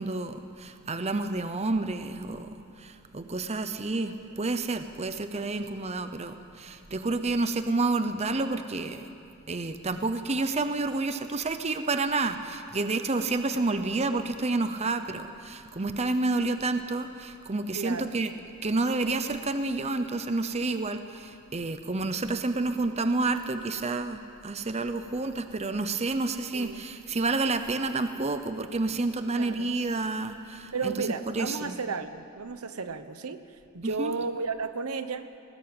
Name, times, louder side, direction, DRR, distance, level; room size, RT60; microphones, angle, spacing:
voice 1, 0.0-9.0 9.5-18.3 18.6-31.8 33.8-34.2, right 3 dB, 30° right, 9 dB, 0.8 m, -29 dB
voice 2, 17.7-18.1 26.5-26.8 29.3-29.7 30.7-33.4 33.7-35.3, right 4 dB, 75° right, 10 dB, 1.1 m, -33 dB
19.0 x 19.0 x 8.9 m, 2.7 s
head